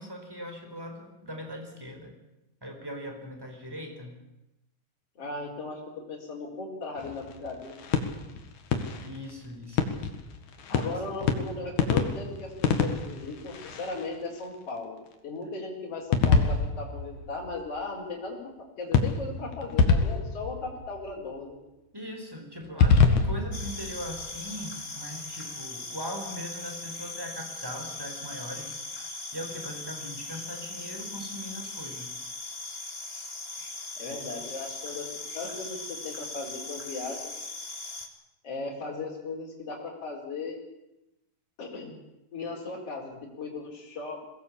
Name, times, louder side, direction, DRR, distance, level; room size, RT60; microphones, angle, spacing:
voice 1, 0.0-2.1 2.6-4.2 9.0-9.9 10.8-11.0 21.9-28.7 29.3-32.1, equal, 5° right, 3 dB, 4.0 m, -40 dB
voice 2, 5.2-5.8 6.1-7.7 10.7-15.0 15.2-18.5 18.8-21.6 34.0-35.1 35.3-37.2 38.4-40.6 41.6-41.9 42.3-44.2, left 3 dB, 45° left, -1 dB, 5.5 m, -37 dB
sound 1, 7.0-14.4 16.1-17.8 18.9-21.3 22.6-24.7, left 5 dB, 60° left, 3.0 m, -27 dB
sound 2, 23.5-38.1, left 2 dB, 25° left, 1.5 m, -39 dB
22.0 x 18.0 x 8.6 m, 0.93 s
omnidirectional pair, 3.9 m